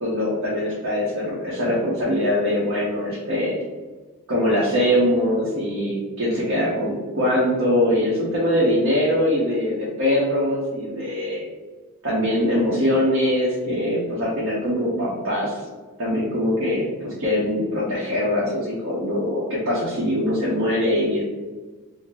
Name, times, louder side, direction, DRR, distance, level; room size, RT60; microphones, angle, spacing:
voice 1, 0.0-3.5 4.3-11.4 12.0-15.6 16.0-21.2, left 1 dB, 75° right, -7 dB, 0.8 m, -22 dB
3.6 x 2.0 x 2.9 m, 1.3 s
head